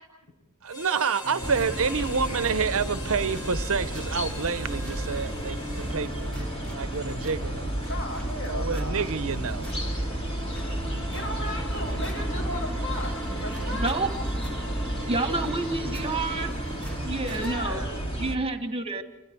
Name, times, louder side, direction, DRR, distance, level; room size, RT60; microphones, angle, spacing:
voice 1, 0.6-6.4 6.7-7.7 8.5-9.7, right 5 dB, 65° right, 0.8 m, -28 dB
Harmonica, 0.7-6.3, left 1 dB, 80° left, 4.8 m, -41 dB
sound 1, 1.2-17.7, equal, 5° left, 2.3 m, -42 dB
sound 2, 1.4-18.4, right 1 dB, 25° left, 2.6 m, -32 dB
voice 2, 7.9-9.1 11.1-13.9 17.2-18.1, left 1 dB, 60° left, 7.3 m, -36 dB
voice 3, 13.7-14.1 15.1-16.7 17.0-17.8 18.2-19.0, right 2 dB, 25° right, 1.7 m, -29 dB
27.5 x 27.0 x 4.7 m
head